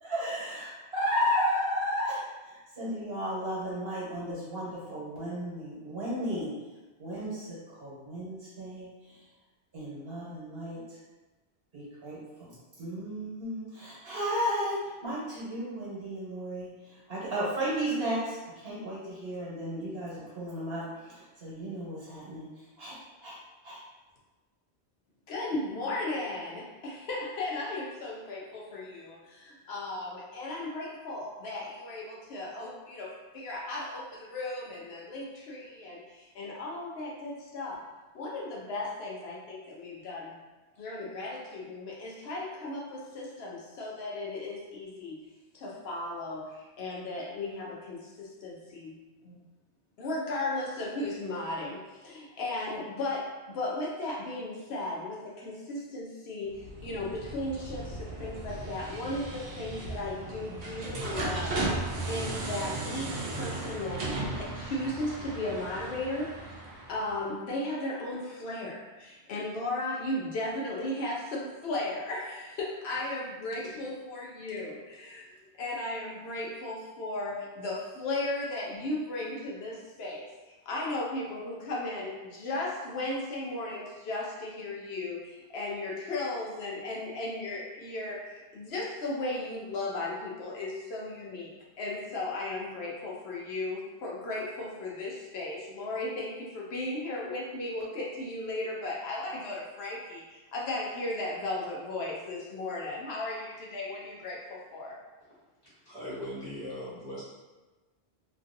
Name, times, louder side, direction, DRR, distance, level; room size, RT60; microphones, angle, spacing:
voice 1, 0.0-6.5 7.0-8.9 9.7-10.8 11.7-16.7 17.1-22.5 22.8-23.4 23.6-23.8, equal, 70° right, -8 dB, 1.4 m, -34 dB
voice 2, 25.3-37.8 38.1-40.3 40.8-45.2 45.5-48.9 49.2-49.4 50.0-64.0 64.3-66.4 66.9-91.5 91.8-104.9, left 2 dB, 75° left, -3 dB, 0.9 m, -36 dB
sound 1, 56.5-67.3, right 2 dB, 90° right, 0.9 m, -36 dB
voice 3, 105.6-107.2, left 1 dB, 40° left, -9 dB, 1.2 m, -39 dB
2.9 x 2.6 x 2.6 m, 1.2 s
omnidirectional pair, 1.1 m